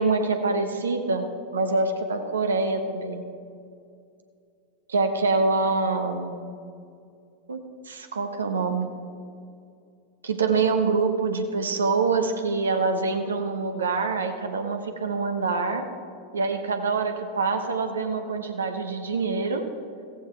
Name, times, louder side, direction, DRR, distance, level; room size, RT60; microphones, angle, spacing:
voice 1, 0.0-3.3 4.9-6.4 7.5-8.9 10.2-15.9 16.3-19.6, right 4 dB, 70° right, 6 dB, 1.0 m, -25 dB
15.5 x 15.0 x 3.4 m, 2.4 s
figure-of-eight pair, 90°, 0 cm